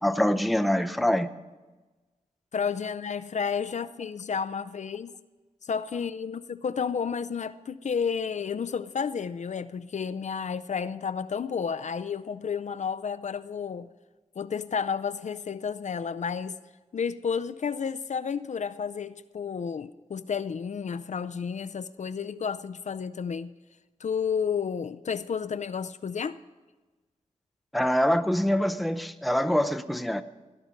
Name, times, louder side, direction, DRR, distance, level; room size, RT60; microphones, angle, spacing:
voice 1, 0.0-1.3 27.7-30.2, equal, ahead, 8 dB, 0.6 m, -24 dB
voice 2, 2.5-5.1 5.6-13.9 14.4-16.6 16.9-23.5 24.0-26.4, left 6 dB, 60° left, 12 dB, 0.5 m, -31 dB
17.5 x 11.0 x 5.1 m, 1.2 s
wide cardioid pair, 85°, 14 cm